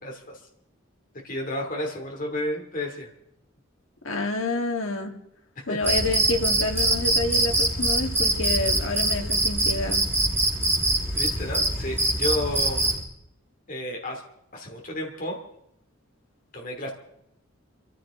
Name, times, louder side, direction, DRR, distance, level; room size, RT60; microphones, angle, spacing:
voice 1, 0.0-0.4 1.2-3.1 5.7-5.8 11.1-13.0 13.7-14.2 14.5-15.4 16.5-16.9, left 1 dB, 40° left, 1 dB, 2.6 m, -31 dB
voice 2, 4.0-5.1 5.7-10.1, left 2 dB, 80° left, 3 dB, 1.9 m, -28 dB
Cricket, 5.8-13.0, right 2 dB, 10° right, 2.0 m, -24 dB
26.0 x 14.5 x 3.8 m, 0.78 s
head